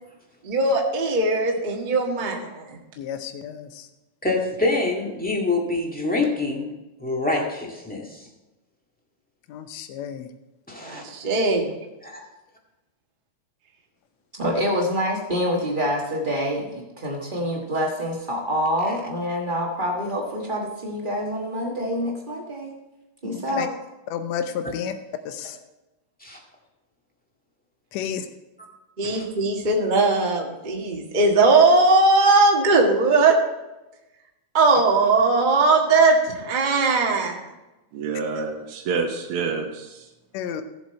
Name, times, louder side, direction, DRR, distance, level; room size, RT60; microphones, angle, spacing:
voice 1, 0.4-2.8 10.8-11.7 29.0-33.4 34.5-37.4, right 3 dB, 30° right, 0 dB, 0.8 m, -19 dB
voice 2, 3.0-3.9 9.5-10.3 23.2-23.7 24.1-24.9 25.3-25.6 27.9-28.3 34.7-34.8 40.3-40.6, left 8 dB, 70° left, 9 dB, 1.9 m, -31 dB
voice 3, 4.2-6.7 7.0-8.3 10.7-11.0 12.0-12.2 23.5-23.6 26.2-26.4 29.0-29.2, left 2 dB, 5° left, -1 dB, 1.2 m, -26 dB
voice 4, 14.3-22.7 23.2-23.7, equal, 85° right, -2 dB, 0.4 m, -26 dB
voice 5, 37.9-40.1, right 4 dB, 65° right, 2 dB, 1.5 m, -28 dB
15.5 x 7.5 x 4.3 m, 1.0 s
omnidirectional pair, 3.5 m